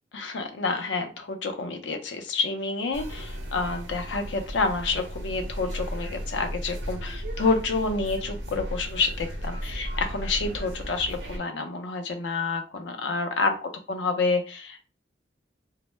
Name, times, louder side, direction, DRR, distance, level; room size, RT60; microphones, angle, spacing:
voice 1, 0.1-13.5 13.9-14.9, left 3 dB, 90° left, 6 dB, 0.5 m, -28 dB
sound 1, 2.9-11.4, equal, 80° right, 0.7 m, -35 dB
2.1 x 2.0 x 3.1 m, 0.34 s
head